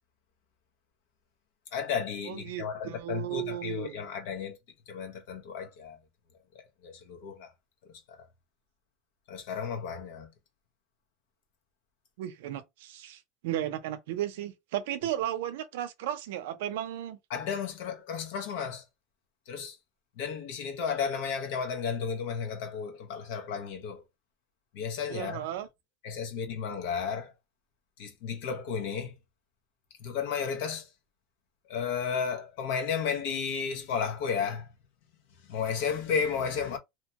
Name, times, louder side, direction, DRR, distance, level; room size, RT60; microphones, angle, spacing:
voice 1, 1.7-4.6 4.9-6.0 6.5-7.5 8.1-8.3 9.3-10.3 17.3-18.8 19.5-19.8 20.2-24.0 24.7-25.5 26.0-27.3 28.0-29.1 30.0-30.9 31.7-34.7 35.4-36.8, left 6 dB, 70° left, 0.8 m, -33 dB
voice 2, 2.3-3.9 12.2-17.2 25.1-25.7, right 12 dB, 85° right, 0.5 m, -35 dB
2.8 x 2.2 x 2.8 m
supercardioid pair, 165°, 0 cm